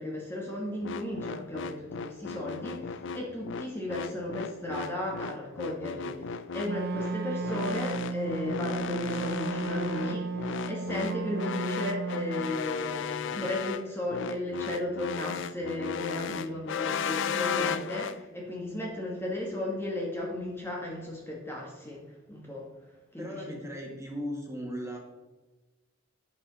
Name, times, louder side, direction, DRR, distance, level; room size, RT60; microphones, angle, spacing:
voice 1, 0.0-22.0 22.3-23.5, left 1 dB, 10° left, -3 dB, 1.3 m, -35 dB
sound 1, 0.8-18.2, left 6 dB, 65° left, 0.4 m, -35 dB
Wind instrument woodwind instrument, 6.6-12.6, right 4 dB, 55° right, 0.5 m, -34 dB
voice 2, 23.2-25.0, equal, 15° right, -1 dB, 1.7 m, -37 dB
11.0 x 5.0 x 3.9 m, 1.2 s
head